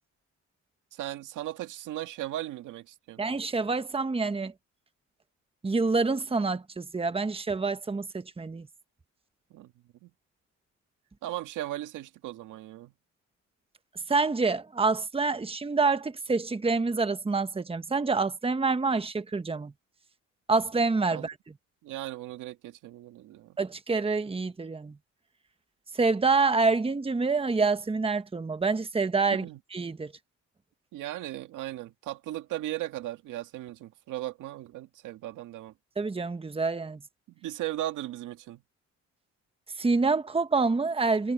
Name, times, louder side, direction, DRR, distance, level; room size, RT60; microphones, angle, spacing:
voice 1, 0.9-3.2 9.5-9.7 10.0-10.1 11.2-12.9 21.1-21.3 21.8-23.5 29.3-29.6 30.9-35.7 37.4-38.6, right 14 dB, 85° right, 1.9 m, -37 dB
voice 2, 3.2-4.5 5.6-8.7 14.1-19.7 20.5-21.3 23.6-25.0 25.9-29.5 29.7-30.1 36.0-37.0 39.8-41.3, right 4 dB, 20° right, 1.2 m, -27 dB
cardioid pair, 90°, 30 cm